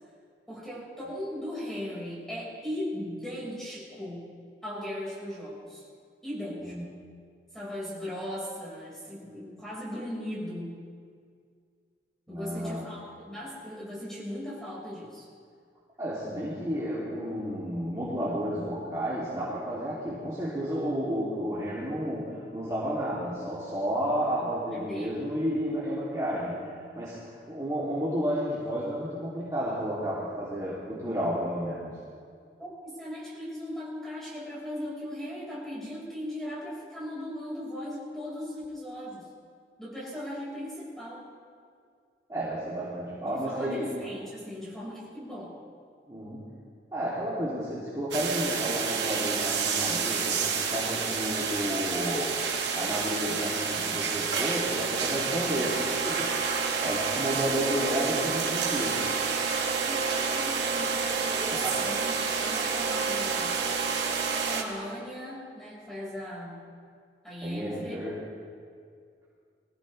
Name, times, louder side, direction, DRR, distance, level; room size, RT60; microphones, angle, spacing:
voice 1, 0.5-4.3 4.6-5.8 6.2-6.8 7.5-10.8 12.3-15.3 20.5-20.8 24.4-25.3 32.6-39.3 39.8-41.3 43.2-45.5 57.2-57.7 59.7-62.1 62.4-63.6 64.5-66.6 67.2-68.0, left 1 dB, 5° left, -7 dB, 4.7 m, -38 dB
voice 2, 12.3-12.8 16.0-26.6 26.9-31.9 42.3-43.9 46.1-46.4 46.9-52.3 52.7-56.4 56.8-59.1 61.5-61.7 67.4-68.2, equal, 20° right, -9 dB, 2.6 m, -31 dB
sound 1, 48.1-64.6, right 5 dB, 85° right, 1.9 m, -29 dB
22.5 x 15.0 x 3.2 m, 2.2 s
head